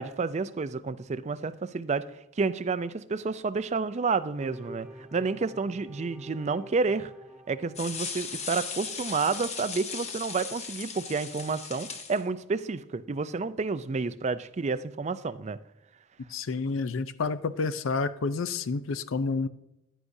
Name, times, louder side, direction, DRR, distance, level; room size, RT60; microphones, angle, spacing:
voice 1, 0.0-2.1 2.4-7.1 7.5-15.6, right 4 dB, 35° right, 13 dB, 0.4 m, -30 dB
sound 1, 4.4-9.0, equal, ahead, 0.7 m, -47 dB
sound 2, 7.7-12.2, left 5 dB, 35° left, 0.8 m, -37 dB
voice 2, 16.3-19.5, left 4 dB, 75° left, 13 dB, 0.5 m, -29 dB
10.0 x 9.6 x 2.7 m, 0.86 s
head